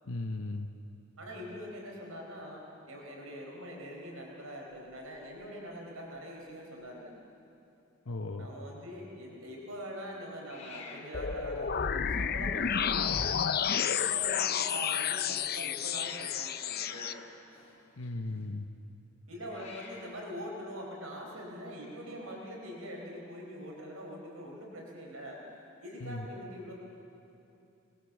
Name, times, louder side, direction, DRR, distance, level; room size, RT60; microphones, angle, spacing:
voice 1, 0.1-0.7 8.1-8.5 18.0-18.7 26.0-26.3, left 2 dB, 75° left, 5 dB, 0.9 m, -36 dB
voice 2, 1.2-2.6 2.9-7.1 8.4-17.1 19.3-25.4 25.8-26.7, equal, 90° right, -1 dB, 4.6 m, -43 dB
Hiss, 4.1-5.5 5.7-6.2 6.5-6.6 6.7-7.4 10.4-14.7 15.5-18.4 19.4-20.3, left 4 dB, 30° left, 3.0 m, -52 dB
sound 1, 11.1-17.1, left 8 dB, 45° left, 0.6 m, -31 dB
27.0 x 20.5 x 7.3 m, 2.8 s
head